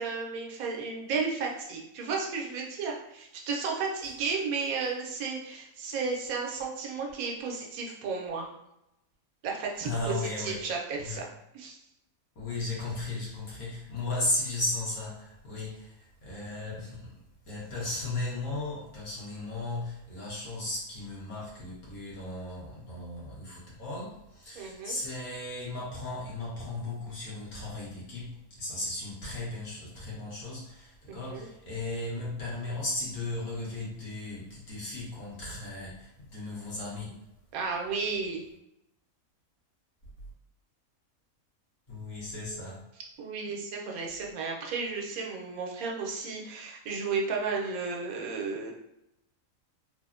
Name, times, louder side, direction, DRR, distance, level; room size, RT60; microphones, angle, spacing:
voice 1, 0.0-8.5 9.4-11.3 11.5-11.8 24.6-25.0 31.1-31.5 37.5-38.5 43.2-48.7, right 4 dB, 90° right, -1 dB, 1.1 m, -33 dB
voice 2, 9.8-10.6 11.0-11.2 12.3-17.1 17.5-37.2 41.9-42.8, left 2 dB, 75° left, -6 dB, 1.4 m, -36 dB
3.3 x 2.0 x 2.4 m, 0.84 s
omnidirectional pair, 1.5 m